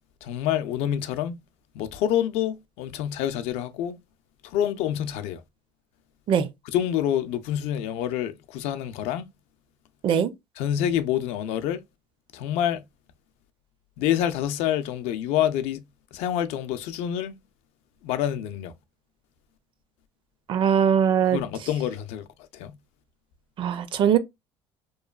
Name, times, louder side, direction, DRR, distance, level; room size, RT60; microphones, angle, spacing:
voice 1, 0.2-1.4 1.7-4.0 4.4-5.4 6.7-9.3 10.6-11.8 12.3-12.8 14.0-15.8 16.1-17.4 18.0-18.7 21.3-22.2 22.5-22.7, left 10 dB, 75° left, 0.4 m, -27 dB
voice 2, 20.5-21.4 23.6-24.2, right 8 dB, 50° right, 0.5 m, -21 dB
3.0 x 2.1 x 2.3 m
supercardioid pair, 100°, 11 cm